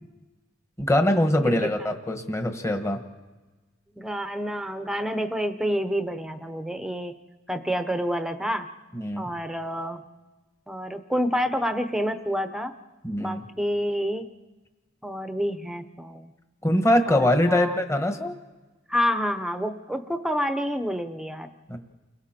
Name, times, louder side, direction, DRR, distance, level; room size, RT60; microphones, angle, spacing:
voice 1, 0.8-3.0 8.9-9.3 13.0-13.4 16.6-18.3 21.7-21.8, left 1 dB, 15° left, 6 dB, 1.3 m, -23 dB
voice 2, 4.0-7.1 7.5-8.7 9.2-10.0 10.7-12.7 13.2-14.3 15.0-16.3 17.1-17.8 18.9-21.5, equal, ahead, 8 dB, 0.9 m, -28 dB
29.5 x 22.0 x 4.4 m, 1.2 s
head